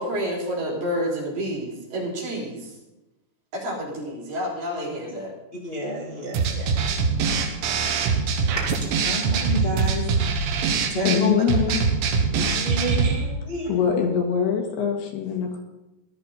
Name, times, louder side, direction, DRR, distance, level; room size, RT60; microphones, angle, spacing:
voice 1, 0.0-2.7 3.5-5.3, equal, 65° right, -3 dB, 5.7 m, -29 dB
voice 2, 5.6-6.8 7.5-7.8 8.5-10.0 10.3-10.6 10.9-11.4 12.3-13.8, left 1 dB, 25° left, -4 dB, 1.2 m, -30 dB
sound 1, 6.3-13.2, right 5 dB, 90° right, 3.6 m, -23 dB
voice 3, 11.1-11.8 12.5-12.7 13.7-15.6, left 7 dB, 70° left, 2 dB, 3.6 m, -23 dB
16.5 x 12.5 x 4.1 m, 0.98 s
omnidirectional pair, 5.0 m